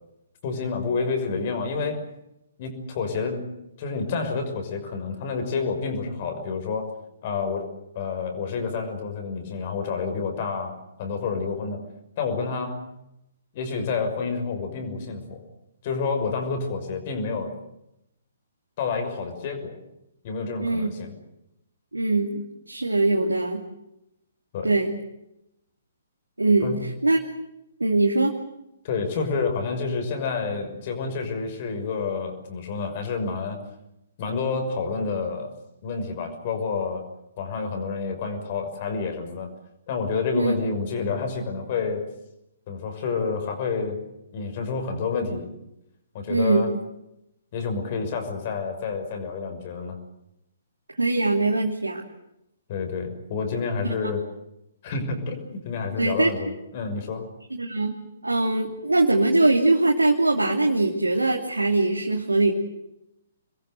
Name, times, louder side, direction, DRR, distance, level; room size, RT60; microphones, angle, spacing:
voice 1, 0.4-2.0 2.6-3.5 3.8-6.9 7.2-7.7 7.9-11.8 12.2-12.9 13.5-15.4 15.8-17.5 18.8-19.8 20.2-21.1 24.5-24.7 26.6-26.8 28.8-33.6 34.2-35.5 35.8-37.0 37.4-39.5 39.9-42.0 42.7-44.0 44.3-45.5 46.1-46.7 47.5-50.0 52.7-54.2 54.8-57.3, left 4 dB, 40° left, 6 dB, 6.2 m, -29 dB
voice 2, 20.6-20.9 21.9-23.6 24.6-24.9 26.4-26.7 27.0-27.2 27.8-28.3 40.3-40.5 46.3-46.7 51.0-52.0 56.0-56.3 57.5-58.0 58.2-62.5, right 2 dB, 80° right, 1 dB, 2.9 m, -22 dB
26.5 x 22.0 x 8.0 m, 0.86 s
figure-of-eight pair, 125°, 0 cm